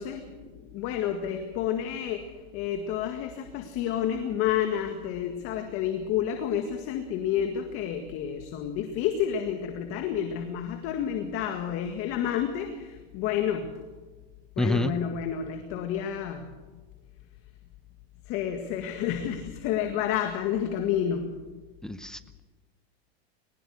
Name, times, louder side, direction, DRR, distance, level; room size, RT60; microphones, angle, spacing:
voice 1, 0.0-13.7 14.6-16.5 18.3-21.3, left 9 dB, 40° left, 5 dB, 1.9 m, -30 dB
voice 2, 14.6-14.9 21.8-22.4, left 2 dB, ahead, 11 dB, 0.7 m, -28 dB
21.0 x 20.0 x 6.5 m, 1.3 s
supercardioid pair, 135°, 32 cm